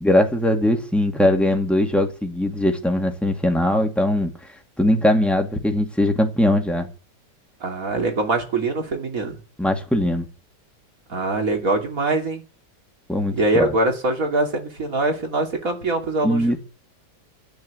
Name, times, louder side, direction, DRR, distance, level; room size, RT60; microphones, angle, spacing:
voice 1, 0.0-4.3 4.8-6.9 9.6-10.3 13.1-13.7 16.2-16.6, left 1 dB, ahead, 2.2 m, -20 dB
voice 2, 7.6-9.3 11.1-12.4 13.3-16.6, right 2 dB, 45° right, 3.2 m, -23 dB
12.5 x 9.5 x 7.9 m
omnidirectional pair, 2.0 m